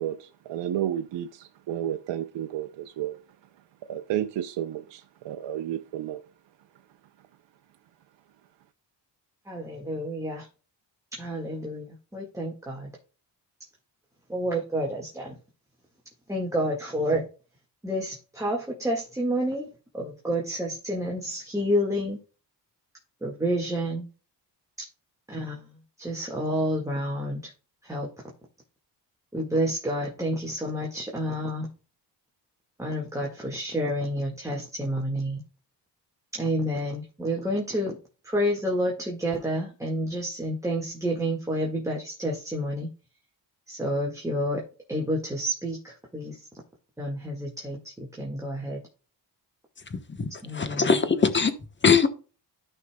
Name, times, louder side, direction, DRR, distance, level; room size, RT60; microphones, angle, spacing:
voice 1, 0.0-3.2 3.9-6.2, right 11 dB, 80° right, 0.7 m, -32 dB
voice 2, 9.5-10.5 11.2-12.9 14.3-15.4 16.3-17.3 17.8-19.7 19.9-22.2 23.2-24.0 25.3-27.5 27.8-28.1 29.3-31.7 32.8-35.4 36.3-38.0 38.2-42.9 43.7-44.6 44.9-46.5 47.0-48.8 50.4-50.9, equal, 5° right, 1.8 m, -29 dB
voice 3, 49.9-50.3 50.5-51.5 51.8-52.1, left 5 dB, 25° left, 1.1 m, -21 dB
13.0 x 5.5 x 2.3 m
cardioid pair, 110°, 43 cm